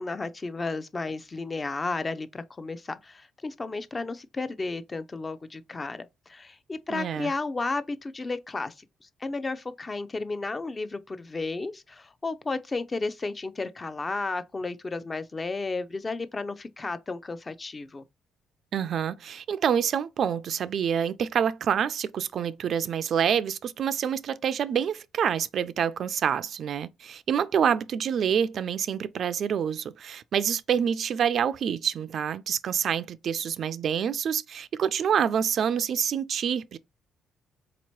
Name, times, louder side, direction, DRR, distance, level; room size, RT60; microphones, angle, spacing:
voice 1, 0.0-18.0, left 3 dB, 30° left, 0.5 m, -33 dB
voice 2, 6.9-7.3 18.7-36.8, right 8 dB, 60° right, 0.3 m, -27 dB
4.2 x 2.9 x 3.0 m
cardioid pair, 90°, 0 cm